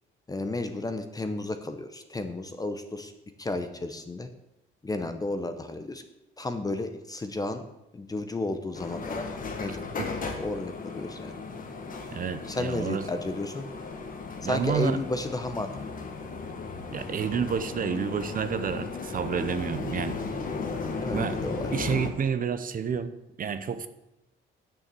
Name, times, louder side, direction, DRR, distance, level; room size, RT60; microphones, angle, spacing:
voice 1, 0.3-3.1 3.4-4.3 4.8-6.0 6.4-7.6 7.9-9.8 10.4-11.3 12.5-13.6 14.4-15.9 21.0-21.7, left 2 dB, 20° left, 8 dB, 0.8 m, -32 dB
sound 1, 8.7-22.1, left 4 dB, 40° left, 1.5 m, -36 dB
voice 2, 12.1-13.1 14.4-15.0 16.9-20.2 21.1-21.4 21.7-23.9, right 7 dB, 40° right, 12 dB, 0.7 m, -29 dB
8.8 x 6.9 x 7.6 m, 0.93 s
cardioid pair, 135°, 21 cm